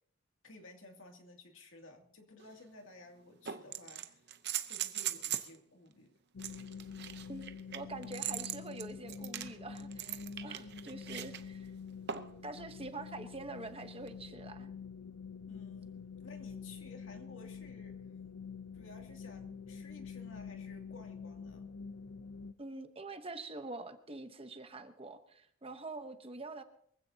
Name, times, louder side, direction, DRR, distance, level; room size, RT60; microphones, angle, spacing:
voice 1, 0.4-4.2 4.6-6.1 10.3-10.4 15.5-18.0 18.7-21.7, left 2 dB, 60° left, 2 dB, 2.6 m, -55 dB
sound 1, 2.4-2.5 3.4-5.5 6.4-11.4 12.1-12.4 14.1-14.2, right 10 dB, 50° right, 0.8 m, -40 dB
sound 2, 6.3-22.5, left 6 dB, 90° left, 0.6 m, -47 dB
voice 2, 7.7-11.7 12.4-14.7 22.6-26.6, right 2 dB, 25° right, 8 dB, 1.0 m, -45 dB
23.5 x 15.5 x 2.9 m, 0.66 s
head